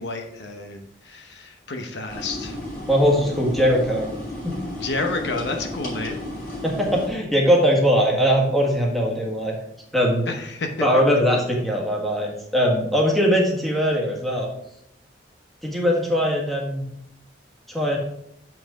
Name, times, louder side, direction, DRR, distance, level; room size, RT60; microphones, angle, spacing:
voice 1, 0.0-2.6 4.8-6.2 10.3-10.7, left 3 dB, 65° left, 5 dB, 0.9 m, -30 dB
sound 1, 2.1-7.1, left 1 dB, 50° left, 3.6 m, -33 dB
voice 2, 2.9-4.1 4.4-4.5 6.6-9.5 9.9-10.3 10.8-14.5 15.6-16.8 17.7-18.0, equal, ahead, -2 dB, 1.6 m, -20 dB
7.2 x 6.1 x 4.8 m, 0.78 s
head